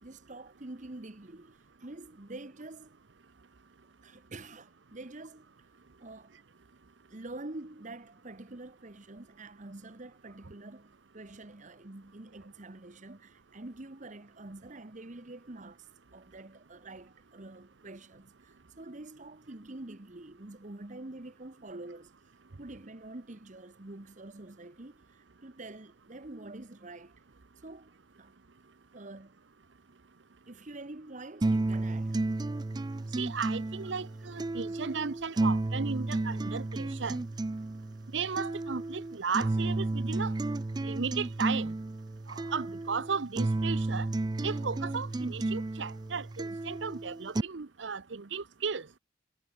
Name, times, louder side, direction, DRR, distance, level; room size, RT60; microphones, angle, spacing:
voice 1, 0.0-3.0 4.0-5.5 6.0-6.4 7.1-22.1 22.6-25.0 25.4-27.2 27.6-28.3 28.9-29.4 30.5-32.2, right 2 dB, 40° right, 1.2 m, -46 dB
sound 1, 31.4-47.4, right 2 dB, 20° right, 0.4 m, -32 dB
voice 2, 33.2-37.2 38.1-40.3 40.8-41.7 42.3-44.1 44.4-48.9, right 5 dB, 75° right, 0.8 m, -35 dB
head